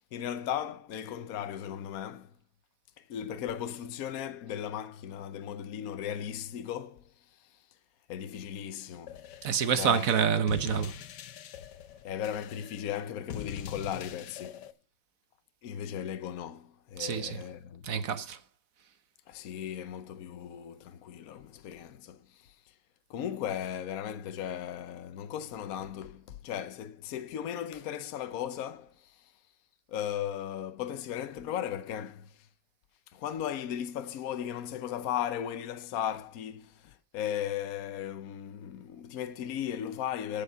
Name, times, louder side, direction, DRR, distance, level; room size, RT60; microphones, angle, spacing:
voice 1, 0.0-2.3 3.0-7.1 8.1-9.2 9.8-10.1 12.0-14.7 15.6-18.1 19.3-22.5 23.1-29.2 29.9-32.4 33.1-40.4, left 10 dB, 60° left, 1.2 m, -36 dB
sound 1, 9.1-14.7, left 9 dB, 80° left, 1.4 m, -43 dB
voice 2, 9.4-10.9 17.0-17.4 17.8-18.4, right 7 dB, 55° right, 1.2 m, -27 dB
14.5 x 5.6 x 5.7 m
omnidirectional pair, 1.8 m